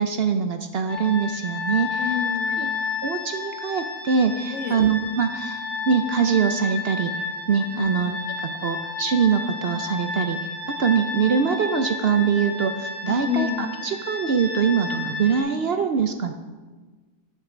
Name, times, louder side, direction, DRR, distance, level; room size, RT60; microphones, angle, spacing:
voice 1, 0.0-2.2 2.6-2.7 3.0-7.1 7.5-8.2 8.4-16.3, right 6 dB, 55° right, 8 dB, 0.8 m, -23 dB
sound 1, 0.9-15.4, left 4 dB, 85° left, 3.6 m, -31 dB
voice 2, 2.0-2.7 4.5-4.8 7.7-7.9 13.1-13.7, left 8 dB, 65° left, 5 dB, 1.5 m, -28 dB
11.5 x 7.2 x 6.1 m, 1.4 s
omnidirectional pair, 1.4 m